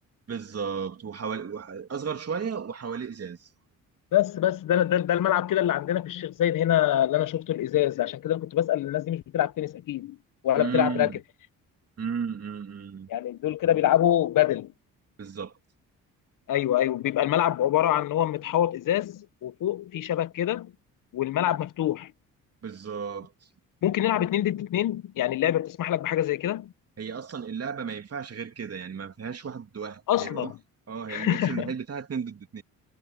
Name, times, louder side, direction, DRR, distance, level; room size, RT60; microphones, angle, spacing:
voice 1, 0.3-3.5 10.6-11.2 12.0-13.1 15.2-15.5 22.6-23.3 24.1-24.3 27.0-30.5 30.9-32.6, right 6 dB, 45° right, 3.1 m, -34 dB
voice 2, 4.1-10.2 10.4-11.1 13.1-14.7 16.5-20.7 21.1-22.1 23.8-26.7 30.1-30.5 31.1-31.7, left 12 dB, 65° left, 1.0 m, -25 dB
supercardioid pair, 70°, 35 cm